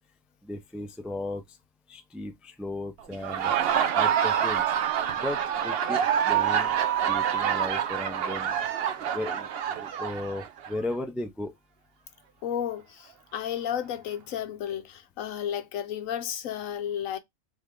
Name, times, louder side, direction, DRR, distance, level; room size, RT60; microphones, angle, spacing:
voice 1, 0.4-1.6 1.9-3.5 3.9-4.6 5.1-8.6 9.0-11.5, left 2 dB, ahead, 0.4 m, -36 dB
Laughter, 3.1-10.8, right 9 dB, 60° right, 0.7 m, -26 dB
voice 2, 12.4-17.2, left 9 dB, 75° left, 1.1 m, -33 dB
3.5 x 3.4 x 3.6 m
omnidirectional pair, 1.4 m